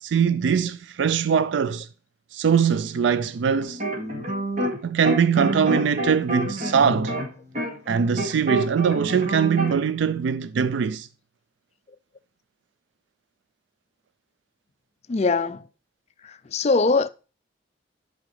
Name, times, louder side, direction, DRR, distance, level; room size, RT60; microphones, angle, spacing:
voice 1, 0.0-1.9 2.3-3.8 4.8-7.2 7.9-11.1, right 7 dB, 75° right, 0.4 m, -22 dB
sound 1, 3.6-4.8 5.0-9.8, right 1 dB, 40° right, 2.3 m, -27 dB
voice 2, 15.1-15.6 16.2-17.1, left 3 dB, 35° left, 0.4 m, -22 dB
11.0 x 5.0 x 3.2 m
head